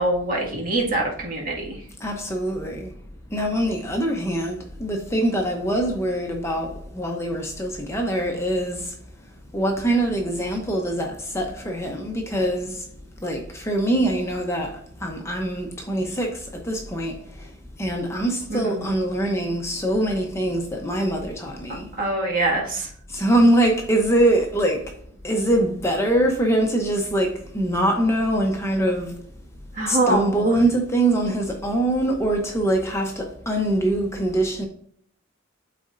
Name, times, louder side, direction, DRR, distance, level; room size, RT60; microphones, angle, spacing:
voice 1, 0.0-1.8 18.5-18.9 22.0-22.9 29.7-30.5, right 2 dB, 45° right, 1.9 m, -24 dB
voice 2, 2.0-2.9 3.3-8.9 9.5-12.8 13.2-14.7 15.0-16.4 16.6-17.1 17.8-21.9 23.1-24.8 25.2-29.1 29.9-34.7, right 1 dB, 15° left, 0.8 m, -23 dB
12.0 x 4.2 x 2.6 m
head